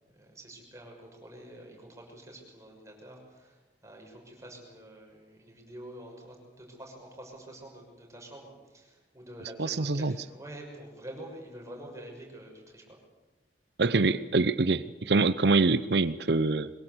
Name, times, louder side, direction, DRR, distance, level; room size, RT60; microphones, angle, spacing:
voice 1, 0.1-13.0, right 1 dB, 15° right, 1 dB, 6.3 m, -47 dB
voice 2, 9.6-10.1 13.8-16.7, right 3 dB, 65° right, 14 dB, 0.8 m, -25 dB
23.0 x 22.0 x 8.1 m, 1.2 s
head